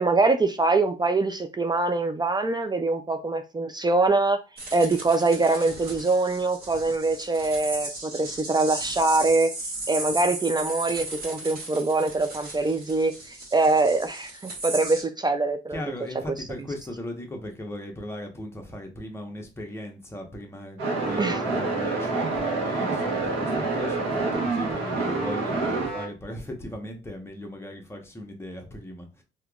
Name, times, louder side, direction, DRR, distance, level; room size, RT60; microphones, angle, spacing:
voice 1, 0.0-4.4 4.7-9.5 9.9-15.8 21.2-21.4, right 3 dB, 20° right, 0.4 m, -23 dB
sound 1, 4.6-15.0, right 2 dB, 50° right, 1.7 m, -36 dB
voice 2, 15.7-29.2, left 1 dB, 10° left, 1.1 m, -38 dB
sound 2, 20.8-26.1, right 3 dB, 85° right, 1.3 m, -27 dB
3.4 x 2.9 x 2.4 m
cardioid pair, 90°, 20 cm